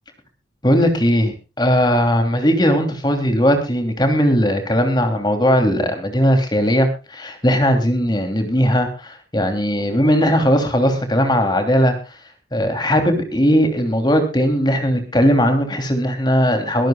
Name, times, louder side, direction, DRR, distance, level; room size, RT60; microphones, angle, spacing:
voice 1, 0.6-11.9 12.5-16.9, equal, 20° left, 6 dB, 3.0 m, -18 dB
22.5 x 14.0 x 2.3 m, 0.31 s
head